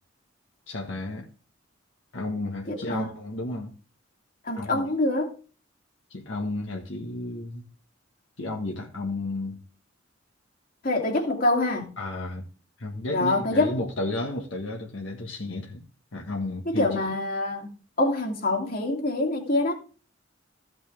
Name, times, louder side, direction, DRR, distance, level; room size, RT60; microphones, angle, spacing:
voice 1, 0.7-1.3 2.1-3.7 4.6-4.9 6.1-7.7 8.4-9.6 12.0-12.4 12.8-15.8 16.1-17.0, left 2 dB, 75° left, 1.6 m, -32 dB
voice 2, 2.7-3.1 4.4-5.3 10.8-11.9 13.1-13.7 16.7-17.7 18.0-19.7, left 2 dB, 50° left, 2.7 m, -25 dB
15.0 x 6.0 x 3.6 m
head